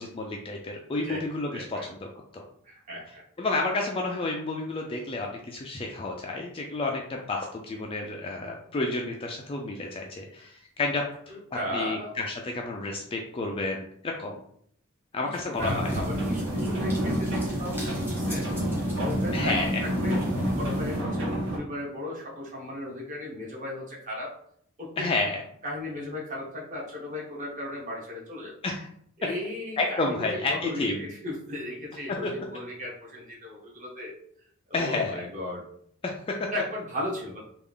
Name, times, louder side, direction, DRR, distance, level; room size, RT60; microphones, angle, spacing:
voice 1, 0.0-1.8 2.3-2.4 3.4-11.4 11.7-14.3 15.1-15.9 19.3-19.8 25.0-25.4 28.6-28.9 29.8-31.1 32.2-32.3 34.7-35.2 36.0-36.5, left 2 dB, 25° left, 0 dB, 0.3 m, -30 dB
voice 2, 1.0-1.9 2.6-3.2 11.3-12.2 15.3-18.5 18.9-20.2 20.5-24.4 24.8-25.1 25.6-28.6 29.2-34.2 34.7-35.6 36.5-37.4, left 1 dB, 35° right, -4 dB, 1.2 m, -36 dB
sound 1, 15.5-21.0, equal, 10° right, 1.1 m, -39 dB
sound 2, 15.6-21.6, equal, 60° right, 1.4 m, -28 dB
3.4 x 2.4 x 3.5 m, 0.66 s
head